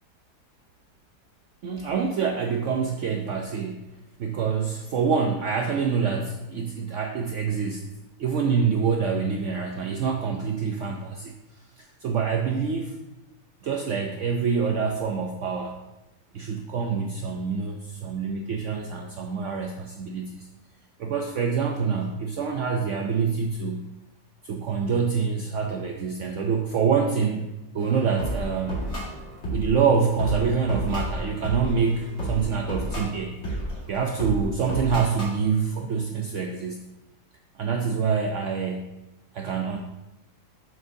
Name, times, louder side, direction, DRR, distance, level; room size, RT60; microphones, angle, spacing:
voice 1, 1.6-3.9 4.2-7.9 8.2-11.3 11.8-13.0 13.6-15.8 16.3-20.5 21.0-23.9 24.4-27.5 27.7-28.9 29.5-33.4 33.9-36.8 37.6-39.0 39.3-39.8, right 6 dB, 70° right, 3 dB, 0.7 m, -26 dB
sound 1, 27.8-35.4, right 1 dB, 45° left, 2.2 m, -32 dB
7.5 x 6.1 x 2.7 m, 0.96 s
omnidirectional pair, 1.8 m